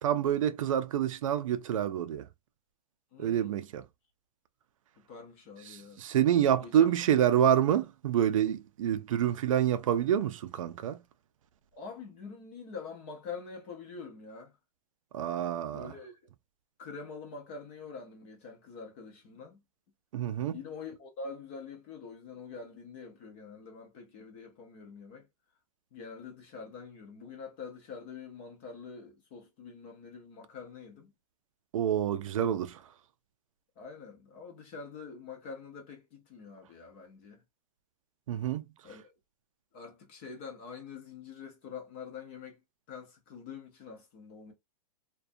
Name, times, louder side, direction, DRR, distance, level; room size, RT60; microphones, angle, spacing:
voice 1, 0.0-2.2 3.2-3.8 5.7-11.0 15.1-15.9 20.1-20.6 31.7-32.8 38.3-38.7, right 10 dB, 55° right, 0.4 m, -27 dB
voice 2, 3.1-3.6 5.1-6.0 6.6-6.9 11.7-14.5 15.7-16.2 16.8-19.6 20.5-25.3 25.9-31.1 33.8-37.4 38.8-39.1 39.7-42.6 42.9-44.5, left 5 dB, 20° left, 0.3 m, -45 dB
2.4 x 2.2 x 2.4 m
hypercardioid pair, 170°, 20 cm